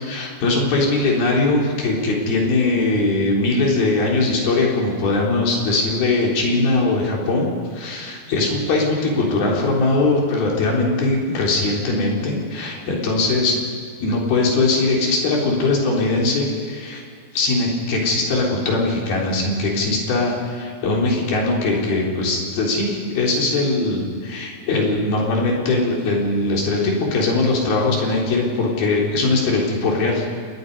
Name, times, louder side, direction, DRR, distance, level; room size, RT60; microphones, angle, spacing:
voice 1, 0.0-13.6 14.0-17.0 17.3-30.3, left 2 dB, 85° left, -2 dB, 5.5 m, -20 dB
29.5 x 20.0 x 5.4 m, 2.1 s
omnidirectional pair, 4.2 m